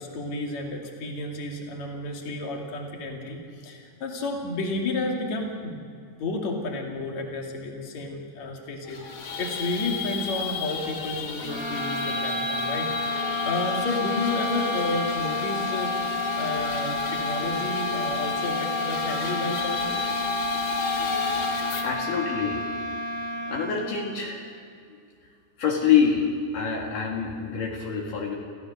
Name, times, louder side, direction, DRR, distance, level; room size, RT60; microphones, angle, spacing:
voice 1, 0.0-5.9 6.2-9.0 9.4-20.0, left 2 dB, 55° left, 0 dB, 3.7 m, -31 dB
sound 1, 8.9-21.8, left 4 dB, 85° left, 4.0 m, -32 dB
sound 2, 11.4-24.1, left 3 dB, 50° right, 2.9 m, -30 dB
voice 2, 21.8-22.6 23.5-24.5 25.6-28.4, left 7 dB, 70° left, -1 dB, 3.7 m, -25 dB
28.5 x 15.5 x 6.7 m, 2.3 s
omnidirectional pair, 4.0 m